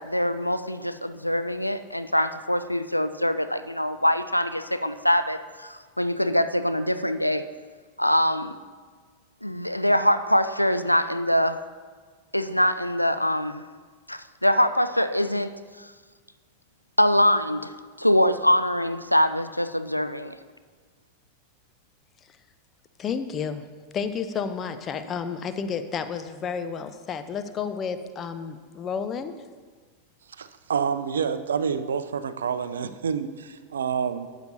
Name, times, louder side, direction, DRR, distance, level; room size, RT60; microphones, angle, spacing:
voice 1, 0.0-7.5 8.0-8.5 9.4-11.6 12.3-13.6 14.1-15.5 15.8-15.9 17.0-17.7 18.0-20.4, equal, 90° left, 11 dB, 0.3 m, -23 dB
voice 2, 23.0-23.6 23.9-29.3, left 6 dB, 25° left, 10 dB, 0.5 m, -31 dB
voice 3, 30.4-34.3, right 6 dB, 65° right, 12 dB, 0.4 m, -28 dB
12.0 x 8.1 x 2.8 m, 1.5 s
figure-of-eight pair, 90°, 0 cm